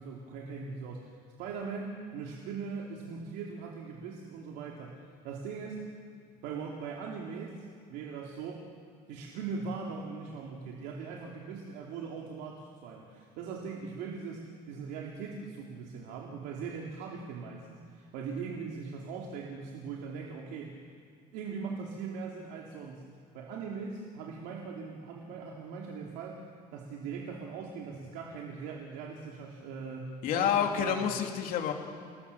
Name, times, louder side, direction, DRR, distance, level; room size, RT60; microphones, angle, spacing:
voice 1, 0.0-5.9 6.4-8.7 9.1-20.8 21.3-23.0 23.3-26.5 26.7-31.1, right 5 dB, 90° right, -1 dB, 3.0 m, -40 dB
voice 2, 30.2-31.7, left 8 dB, 60° left, 3 dB, 3.1 m, -28 dB
30.0 x 20.5 x 7.0 m, 2.2 s
cardioid pair, 155°, 16 cm